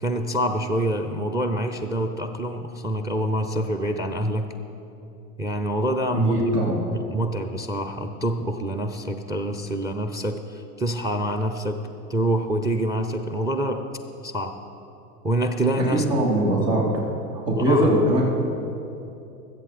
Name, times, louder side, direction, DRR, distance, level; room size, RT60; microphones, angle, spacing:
voice 1, 0.0-4.5 5.4-6.4 6.9-11.8 12.1-13.9 14.2-14.6 15.2-16.0 17.6-17.9, right 1 dB, 10° right, 7 dB, 0.4 m, -26 dB
voice 2, 6.1-6.8 15.8-16.9 17.5-18.2, right 1 dB, 85° right, -4 dB, 2.9 m, -21 dB
21.0 x 7.9 x 4.2 m, 2.8 s
hypercardioid pair, 90°, 47 cm